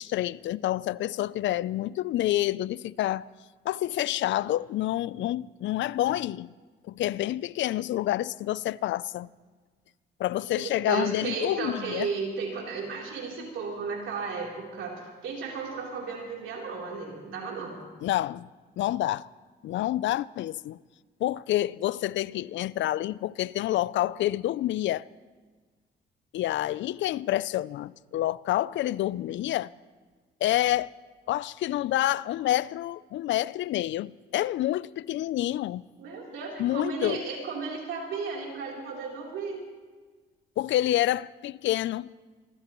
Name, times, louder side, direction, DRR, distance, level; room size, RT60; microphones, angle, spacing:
voice 1, 0.0-3.3 3.7-6.5 6.9-9.3 10.2-12.1 18.0-18.5 18.8-19.3 19.6-20.8 21.2-25.0 26.3-29.7 30.4-30.9 31.3-35.8 36.6-37.2 40.6-42.1, left 14 dB, 70° left, 0.4 m, -28 dB
voice 2, 10.5-17.8 36.0-39.6, right 5 dB, 80° right, 3.6 m, -34 dB
27.5 x 13.5 x 3.1 m
cardioid pair, 90°, 20 cm